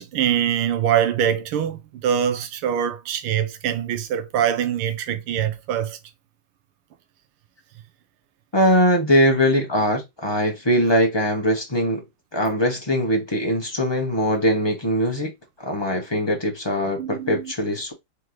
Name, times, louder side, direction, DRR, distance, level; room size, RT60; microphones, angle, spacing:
voice 1, 0.0-6.0 17.0-17.4, right 9 dB, 90° right, 1.7 m, -23 dB
voice 2, 8.5-12.0 12.3-15.3 15.6-17.9, equal, 35° left, 0.4 m, -21 dB
4.5 x 3.7 x 3.0 m
omnidirectional pair, 2.3 m